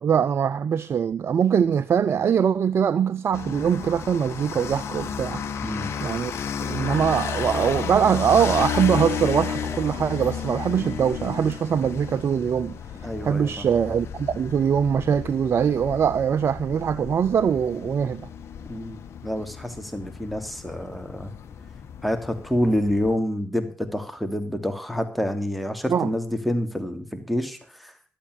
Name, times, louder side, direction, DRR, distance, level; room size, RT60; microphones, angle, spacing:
voice 1, 0.0-5.4 6.0-6.3 6.6-18.3 25.9-26.1, right 7 dB, 60° right, 0.5 m, -22 dB
sound 1, 3.3-23.2, left 7 dB, 65° left, 1.3 m, -33 dB
voice 2, 13.0-13.5 18.7-21.3 22.0-27.9, equal, ahead, 3.0 m, -27 dB
12.0 x 9.0 x 6.9 m
hypercardioid pair, 45°, 5 cm